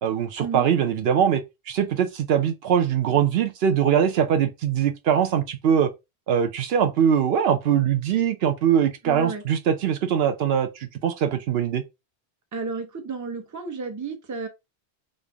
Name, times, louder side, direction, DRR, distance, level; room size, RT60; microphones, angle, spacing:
voice 1, 0.0-1.4 1.7-5.9 6.3-11.8, right 8 dB, 70° right, 0.8 m, -22 dB
voice 2, 9.0-9.4 12.5-14.5, right 4 dB, 20° right, 0.5 m, -32 dB
3.3 x 2.6 x 3.3 m
omnidirectional pair, 1.1 m